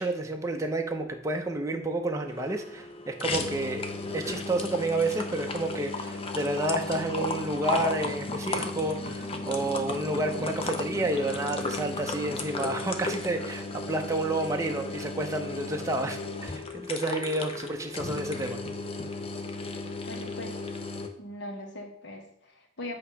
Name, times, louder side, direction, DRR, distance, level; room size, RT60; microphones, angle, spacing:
voice 1, 0.0-18.6, right 2 dB, 15° right, 3 dB, 0.5 m, -30 dB
sound 1, 2.3-21.1, left 3 dB, 30° left, 0.5 m, -35 dB
voice 2, 20.1-20.6 21.2-23.0, left 1 dB, 60° left, 2 dB, 1.3 m, -40 dB
8.0 x 2.8 x 5.5 m, 0.68 s
head